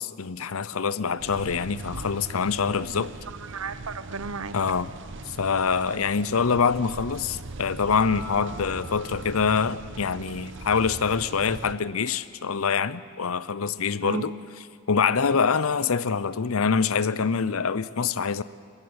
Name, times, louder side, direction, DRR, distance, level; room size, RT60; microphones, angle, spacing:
voice 1, 0.0-3.1 4.5-4.9 5.3-14.3 14.9-18.4, left 5 dB, 80° left, 17 dB, 0.7 m, -25 dB
sound 1, 1.2-11.7, right 3 dB, 60° right, 0.8 m, -40 dB
voice 2, 2.9-4.6 14.0-14.3, right 4 dB, 85° right, 12 dB, 1.1 m, -35 dB
Acoustic guitar, 7.9-11.5, left 2 dB, 40° right, 7.0 m, -44 dB
24.0 x 14.5 x 9.8 m, 2.1 s
head